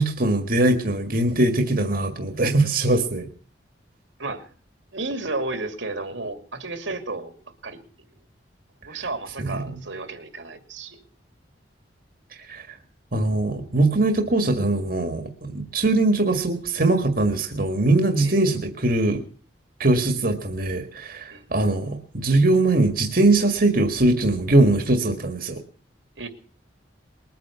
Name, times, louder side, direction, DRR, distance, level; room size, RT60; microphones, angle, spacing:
voice 1, 0.0-3.3 9.4-9.6 12.5-12.6 13.1-19.2 19.8-25.6, right 2 dB, 50° right, 5 dB, 1.8 m, -21 dB
voice 2, 4.9-7.3 7.6-7.8 8.8-11.0 18.2-18.4 21.3-21.4 26.2-26.3, right 2 dB, 85° right, 7 dB, 2.7 m, -32 dB
21.5 x 9.3 x 6.9 m, 0.42 s
head